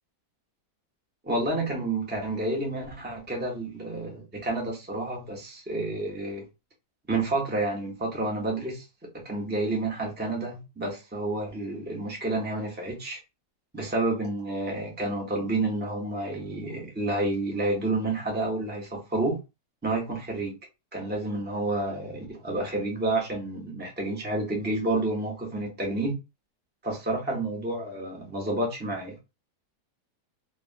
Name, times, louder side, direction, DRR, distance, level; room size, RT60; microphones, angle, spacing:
voice 1, 1.2-6.4 7.1-8.9 9.1-13.2 13.7-19.4 19.8-20.5 20.9-26.1 26.8-29.2, right 2 dB, 10° right, 0.6 m, -29 dB
3.3 x 2.2 x 2.5 m
omnidirectional pair, 1.8 m